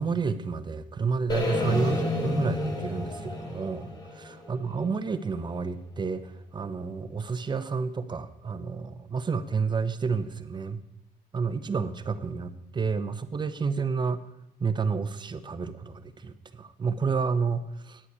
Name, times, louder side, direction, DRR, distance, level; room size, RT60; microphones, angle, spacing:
voice 1, 0.0-10.8 11.3-14.2 14.6-18.0, right 5 dB, 25° right, 11 dB, 0.9 m, -30 dB
sound 1, 1.3-5.3, left 2 dB, 25° left, 1.9 m, -31 dB
10.0 x 8.4 x 8.0 m, 0.84 s
cardioid pair, 110°, 17 cm